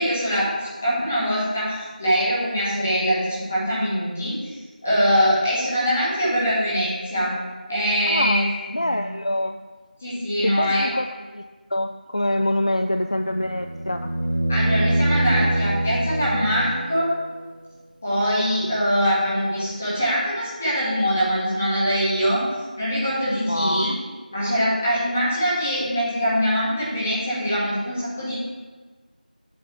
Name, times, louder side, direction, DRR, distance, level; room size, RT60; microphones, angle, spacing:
voice 1, 0.0-4.5 4.8-7.3 7.7-8.5 8.7-9.0 10.0-11.0 14.5-17.1 18.0-22.4 22.8-23.9 24.3-28.3, equal, 10° left, -9 dB, 1.7 m, -23 dB
voice 2, 8.1-9.6 10.4-11.1 11.3-11.4 11.7-14.1 23.5-24.0, left 1 dB, 45° left, 7 dB, 0.4 m, -25 dB
sound 1, 13.2-17.3 19.7-19.8, right 1 dB, 85° right, 0.6 m, -24 dB
8.3 x 6.2 x 5.7 m, 1.4 s
figure-of-eight pair, 175°, 5 cm